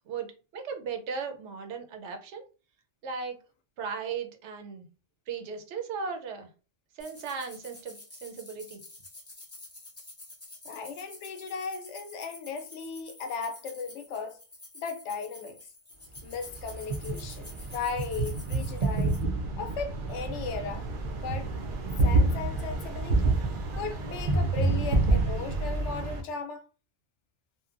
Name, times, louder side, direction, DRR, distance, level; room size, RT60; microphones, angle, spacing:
voice 1, 0.1-2.4 3.0-3.4 3.8-4.9 5.3-6.5 7.0-8.8, right 5 dB, 80° right, 0.9 m, -37 dB
sound 1, 7.0-19.2, left 2 dB, 15° left, 0.6 m, -49 dB
voice 2, 10.6-14.4 14.7-15.6 16.2-19.2 19.6-20.9 21.2-21.5 22.0-23.4 23.7-26.7, left 5 dB, 90° left, 0.9 m, -36 dB
sound 2, 16.2-26.2, right 2 dB, 55° right, 0.7 m, -28 dB
2.7 x 2.2 x 2.4 m
omnidirectional pair, 1.2 m